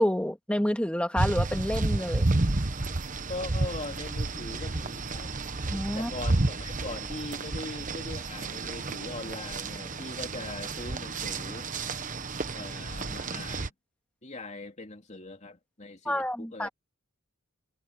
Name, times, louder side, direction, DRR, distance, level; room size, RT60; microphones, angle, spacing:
voice 1, 0.0-2.4 5.7-6.1 16.1-16.7, equal, 5° left, 2.3 m, -28 dB
sound 1, 1.1-13.7, right 2 dB, 35° right, 1.2 m, -31 dB
voice 2, 3.3-5.3 5.9-11.7 12.5-13.7 14.2-16.7, left 2 dB, 30° left, 2.9 m, -41 dB
head